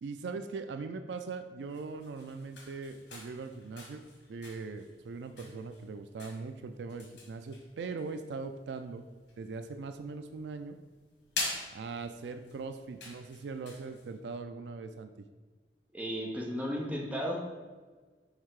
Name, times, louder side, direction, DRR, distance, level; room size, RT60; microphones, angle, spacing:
voice 1, 0.0-4.0 4.3-9.0 9.4-10.8 11.7-15.1, right 4 dB, 75° right, 8 dB, 0.4 m, -40 dB
sound 1, 1.6-14.2, left 3 dB, 90° left, 1.6 m, -45 dB
voice 2, 15.9-17.5, equal, 10° right, -2 dB, 1.0 m, -34 dB
6.5 x 3.6 x 4.7 m, 1.4 s
head